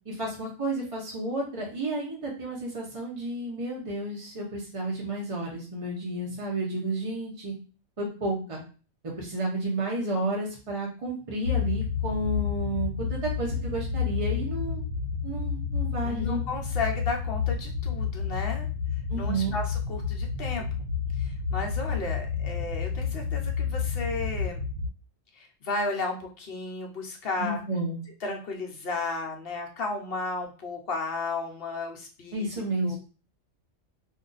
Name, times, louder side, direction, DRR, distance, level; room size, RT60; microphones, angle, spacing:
voice 1, 0.0-7.5 8.0-8.6 9.0-14.8 15.2-16.4 19.1-19.5 27.4-28.0 32.3-33.0, right 2 dB, 35° right, -3 dB, 0.6 m, -31 dB
sound 1, 11.4-24.9, left 6 dB, 70° right, 1.4 m, -30 dB
voice 2, 16.0-18.7 19.1-20.9 21.2-24.6 25.3-27.6 28.2-32.5 32.8-33.0, left 3 dB, 55° left, 1 dB, 0.8 m, -33 dB
2.6 x 2.3 x 3.8 m, 0.36 s
omnidirectional pair, 1.3 m